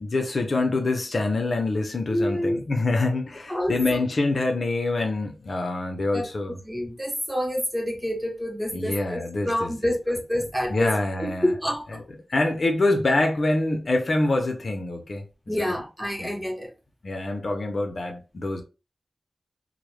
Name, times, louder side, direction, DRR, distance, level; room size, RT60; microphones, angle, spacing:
voice 1, 0.0-6.6 8.7-9.7 10.7-11.5 11.9-12.0 12.3-15.2 15.6-15.8 16.2-16.3 17.0-18.6, left 2 dB, 60° left, 0.5 m, -25 dB
voice 2, 2.1-2.6 3.5-3.8 6.1-6.3 6.6-10.9 11.2-12.0 15.5-16.7, equal, 10° right, 0.7 m, -27 dB
2.1 x 2.0 x 3.1 m
wide cardioid pair, 110°, 0 cm